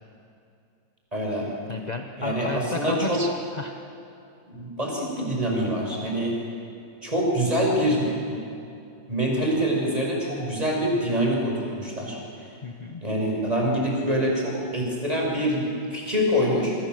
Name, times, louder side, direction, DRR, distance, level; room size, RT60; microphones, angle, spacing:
voice 1, 1.1-1.5 2.2-3.2 4.5-6.4 7.0-8.4 9.1-12.2 13.0-16.8, equal, 15° right, -2 dB, 6.1 m, -25 dB
voice 2, 1.7-3.8 12.6-13.0, left 3 dB, 30° left, 5 dB, 0.8 m, -33 dB
29.0 x 23.0 x 7.8 m, 2.6 s
omnidirectional pair, 2.2 m